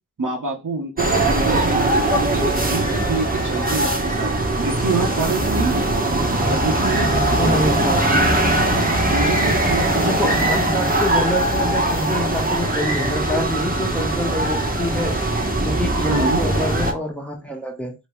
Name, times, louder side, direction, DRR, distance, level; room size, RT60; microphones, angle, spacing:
voice 1, 0.2-4.3 4.6-5.9 6.5-7.8 9.1-10.3 16.1-16.4, right 4 dB, 75° right, 1.0 m, -26 dB
sound 1, 1.0-16.9, right 1 dB, 25° right, 1.1 m, -20 dB
voice 2, 7.4-8.4 10.0-15.2 15.6-17.9, left 1 dB, 5° left, 1.2 m, -26 dB
3.2 x 2.9 x 3.2 m
cardioid pair, 45°, 32 cm